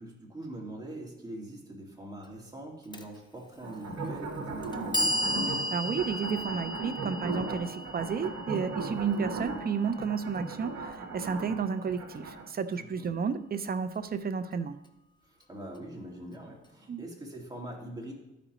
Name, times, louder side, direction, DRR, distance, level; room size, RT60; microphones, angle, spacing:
voice 1, 0.0-5.2 12.8-13.1 15.2-18.1, right 1 dB, 10° right, -2 dB, 2.2 m, -43 dB
Clock, 2.9-3.0 4.0-4.1 4.6-10.7, left 1 dB, 15° left, 0.7 m, -35 dB
sound 1, 3.6-12.5, right 3 dB, 50° right, 1.4 m, -37 dB
voice 2, 5.7-14.8 16.9-17.0, right 6 dB, 30° right, 11 dB, 0.5 m, -32 dB
12.5 x 5.0 x 3.1 m, 0.96 s
cardioid pair, 90°, 30 cm